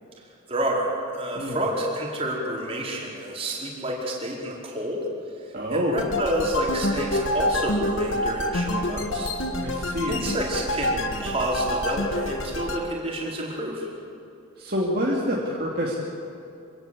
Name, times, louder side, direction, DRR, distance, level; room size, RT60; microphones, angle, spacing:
voice 1, 0.5-5.0 5.4-9.3 10.1-13.9, right 1 dB, 25° right, -3 dB, 4.7 m, -29 dB
voice 2, 5.5-6.0 9.6-10.3 14.6-15.9, equal, 45° right, -4 dB, 2.6 m, -27 dB
sound 1, 6.0-12.8, left 1 dB, 70° left, 1.7 m, -27 dB
26.0 x 17.0 x 8.5 m, 2.7 s
head